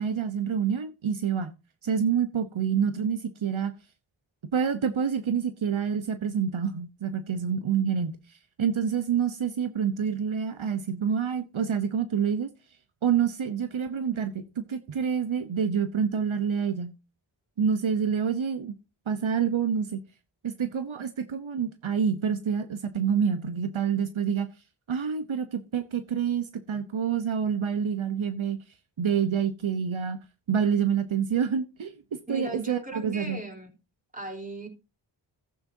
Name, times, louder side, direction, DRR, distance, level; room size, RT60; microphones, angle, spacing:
voice 1, 0.0-1.5 1.8-3.7 4.5-8.1 8.6-12.5 13.0-16.9 17.6-18.7 19.1-20.0 20.4-24.5 24.9-28.6 29.0-30.2 30.5-33.4, right 7 dB, 75° right, 1.0 m, -27 dB
voice 2, 32.3-33.7 34.1-34.7, right 2 dB, 15° right, 3.7 m, -37 dB
14.5 x 8.7 x 2.7 m
cardioid pair, 45°, 48 cm